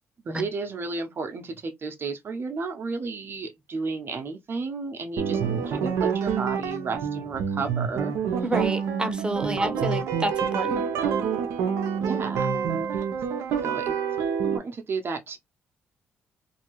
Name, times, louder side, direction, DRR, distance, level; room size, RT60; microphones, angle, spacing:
voice 1, 0.2-5.4 5.7-8.1 9.6-9.9 12.0-12.5 13.0-13.1 13.6-13.9 14.5-15.4, right 4 dB, 50° right, 0.9 m, -32 dB
sound 1, 5.2-14.6, right 7 dB, 80° right, 0.7 m, -27 dB
voice 2, 8.4-10.8, right 1 dB, 20° right, 1.0 m, -29 dB
2.8 x 2.7 x 3.0 m
supercardioid pair, 60°, 5 cm